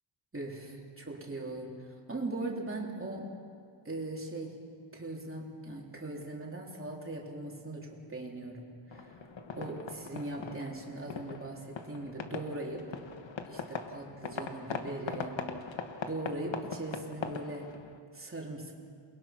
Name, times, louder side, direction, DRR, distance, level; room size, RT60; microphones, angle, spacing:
voice 1, 0.3-3.3 3.8-4.6 4.9-9.1 9.6-12.9 13.5-15.4 16.0-17.7 18.1-18.7, right 2 dB, 30° right, -2 dB, 3.7 m, -40 dB
sound 1, 8.9-18.0, left 5 dB, 80° left, 1.4 m, -41 dB
29.0 x 22.0 x 6.1 m, 2.2 s
wide cardioid pair, 130°, 45 cm